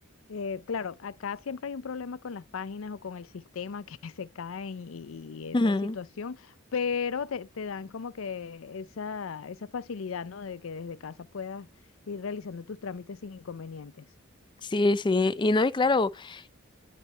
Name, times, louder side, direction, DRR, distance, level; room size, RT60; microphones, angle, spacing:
voice 1, 0.3-11.7 12.1-14.1, left 6 dB, 85° left, 0.5 m, -36 dB
voice 2, 5.5-6.0 14.6-16.5, left 2 dB, 25° left, 0.4 m, -24 dB
10.0 x 4.1 x 4.3 m
head